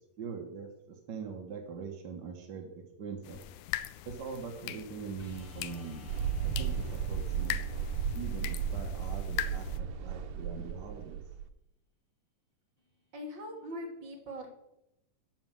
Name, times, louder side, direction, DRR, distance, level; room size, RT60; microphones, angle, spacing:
voice 1, 0.2-3.4 4.0-6.1 6.4-7.6 8.1-11.2, right 6 dB, 60° right, 2 dB, 1.1 m, -42 dB
sound 1, 3.2-9.8, left 13 dB, 80° left, 1.9 m, -41 dB
sound 2, 5.2-11.1 13.6-13.7, left 3 dB, 10° left, 3.7 m, -47 dB
Mechanical fan, 6.1-11.5, right 8 dB, 85° right, 2.2 m, -35 dB
voice 2, 13.1-14.5, equal, 45° right, 1 dB, 2.0 m, -41 dB
9.5 x 6.0 x 7.5 m, 0.86 s
omnidirectional pair, 3.6 m